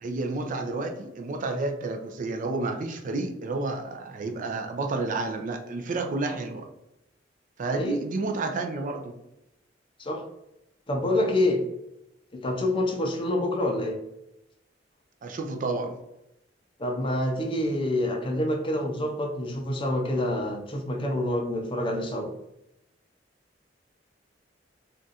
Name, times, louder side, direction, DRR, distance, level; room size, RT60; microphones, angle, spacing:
voice 1, 0.0-6.7 7.6-9.1 15.2-16.0, right 3 dB, 45° right, 5 dB, 0.4 m, -30 dB
voice 2, 10.9-11.6 12.3-14.0 16.8-22.3, left 1 dB, 30° left, 3 dB, 0.5 m, -27 dB
2.5 x 2.3 x 3.9 m, 0.87 s
head